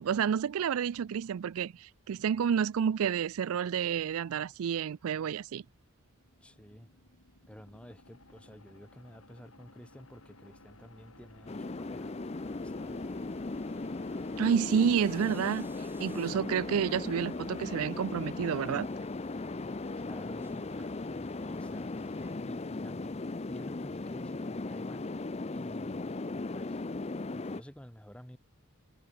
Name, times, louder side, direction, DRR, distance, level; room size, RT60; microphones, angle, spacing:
voice 1, 0.0-5.6 14.4-18.9, right 7 dB, 75° right, 0.4 m, -30 dB
sound 1, 6.0-19.1, left 2 dB, 80° left, 6.1 m, -56 dB
voice 2, 6.4-6.9 7.5-12.1 12.6-13.1 20.0-21.9 22.4-23.2 23.5-25.0 25.5-26.8 27.3-28.4, equal, 5° left, 1.6 m, -51 dB
sound 2, 11.5-27.6, left 3 dB, 30° left, 0.5 m, -37 dB
sound 3, 12.4-22.4, right 1 dB, 10° right, 5.9 m, -57 dB
head